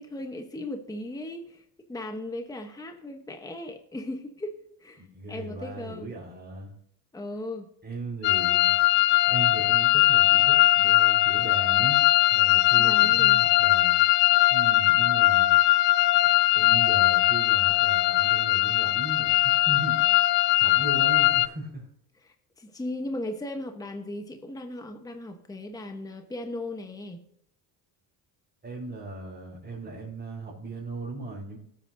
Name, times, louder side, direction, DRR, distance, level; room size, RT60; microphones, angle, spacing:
voice 1, 0.0-1.6 1.9-4.5 4.8-6.1 7.1-7.7 12.8-13.4 22.2-27.2, left 1 dB, 10° left, 5 dB, 1.1 m, -37 dB
voice 2, 5.0-6.7 7.8-8.7 9.3-12.0 12.3-14.0 14.5-15.5 16.5-21.9 28.6-31.6, right 2 dB, 20° right, -7 dB, 4.7 m, -37 dB
sound 1, 8.2-21.5, left 17 dB, 80° left, 0.5 m, -20 dB
18.0 x 8.9 x 2.7 m, 0.73 s
cardioid pair, 110°, 42 cm